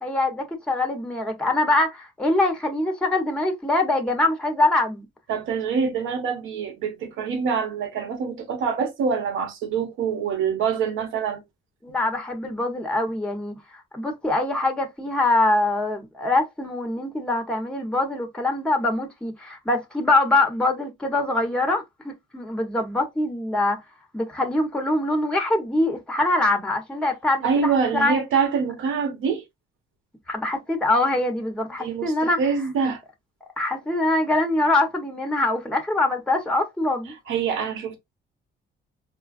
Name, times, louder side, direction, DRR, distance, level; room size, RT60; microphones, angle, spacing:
voice 1, 0.0-5.1 11.8-13.6 13.9-23.8 24.1-28.2 30.3-32.4 32.8-32.9 33.6-37.1, left 2 dB, 5° left, 1.0 m, -23 dB
voice 2, 5.3-11.4 11.9-12.0 27.4-29.4 31.8-33.0 37.3-38.0, right 6 dB, 85° right, 1.1 m, -25 dB
4.3 x 2.3 x 2.4 m
cardioid pair, 90°, 20 cm